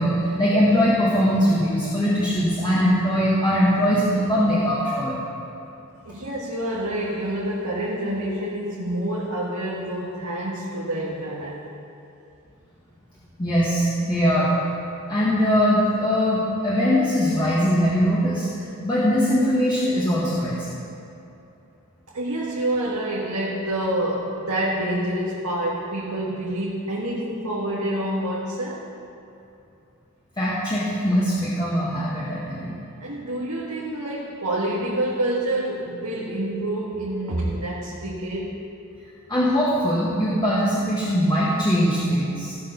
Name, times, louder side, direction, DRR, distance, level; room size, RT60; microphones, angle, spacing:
voice 1, 0.0-5.2 13.4-14.5 15.1-18.5 18.8-20.7 30.4-32.7 39.3-42.6, equal, 20° left, -8 dB, 1.7 m, -21 dB
voice 2, 6.1-11.6 22.1-28.9 33.0-38.6, right 1 dB, 85° right, -6 dB, 1.7 m, -27 dB
17.0 x 6.8 x 5.6 m, 2.7 s
head